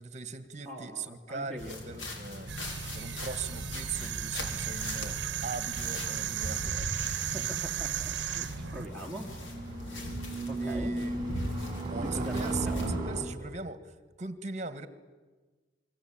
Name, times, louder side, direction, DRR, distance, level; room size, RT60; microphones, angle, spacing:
voice 1, 0.0-2.5 2.9-6.9 10.6-11.2 11.8-14.9, right 4 dB, 35° right, 12 dB, 1.6 m, -40 dB
voice 2, 0.7-1.8 7.2-9.3 10.5-10.9 12.0-12.7, equal, 5° left, 1 dB, 3.1 m, -42 dB
sound 1, 1.6-13.0, equal, 80° left, 5.0 m, -39 dB
sound 2, 2.5-8.9, right 9 dB, 65° right, 0.9 m, -35 dB
sound 3, 5.8-13.2, right 2 dB, 20° right, 4.1 m, -37 dB
27.0 x 23.0 x 8.8 m, 1.3 s
head